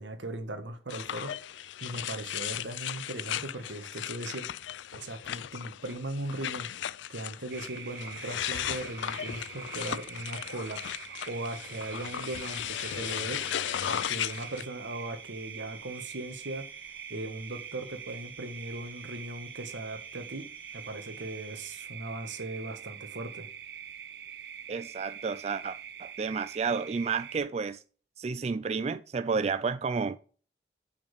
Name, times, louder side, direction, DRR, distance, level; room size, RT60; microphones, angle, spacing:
voice 1, 0.0-1.3 1.6-4.5 4.9-6.7 7.1-13.4 13.9-16.6 17.1-20.5 20.7-23.5, right 1 dB, 90° right, 1.6 m, -38 dB
sound 1, 0.9-14.6, left 11 dB, 85° left, 0.4 m, -36 dB
sound 2, 7.5-27.4, right 8 dB, 60° right, 0.7 m, -44 dB
sound 3, 11.3-21.8, equal, 10° left, 3.1 m, -55 dB
voice 2, 24.7-27.8 28.2-30.2, right 5 dB, 35° right, 0.3 m, -31 dB
6.7 x 5.8 x 5.0 m
head